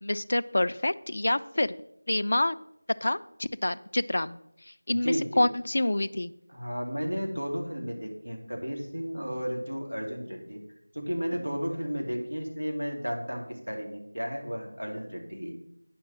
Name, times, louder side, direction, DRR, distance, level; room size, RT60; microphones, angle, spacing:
voice 1, 0.0-1.8 2.1-2.6 3.0-4.4 4.7-6.3, left 1 dB, 50° left, 12 dB, 0.4 m, -27 dB
voice 2, 4.9-5.5 6.5-10.6 10.9-15.5, equal, 90° right, 2 dB, 2.6 m, -33 dB
9.4 x 5.9 x 6.2 m, 0.78 s
figure-of-eight pair, 170°, 0 cm